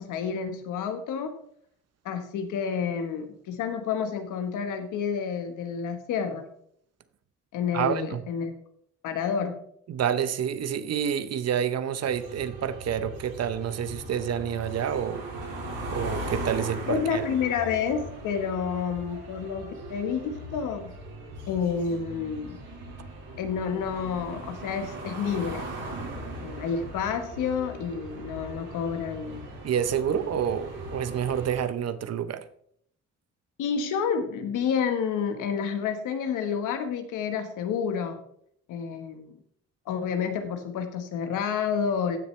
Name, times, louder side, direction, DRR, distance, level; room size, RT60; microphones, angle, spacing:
voice 1, 0.0-1.3 2.0-6.5 7.5-8.5 9.0-9.6 16.9-20.9 21.5-22.6 23.4-25.7 26.4-29.5 30.1-30.4 33.6-38.2 38.7-39.3 39.9-42.2, left 6 dB, 85° left, 7 dB, 1.4 m, -29 dB
voice 2, 7.7-8.2 9.9-15.2 15.9-17.3 29.6-32.4, right 8 dB, 55° right, 13 dB, 0.9 m, -28 dB
sound 1, 12.0-31.6, right 1 dB, 85° right, 5.1 m, -39 dB
15.0 x 6.7 x 3.3 m, 0.66 s
cardioid pair, 90°, 30 cm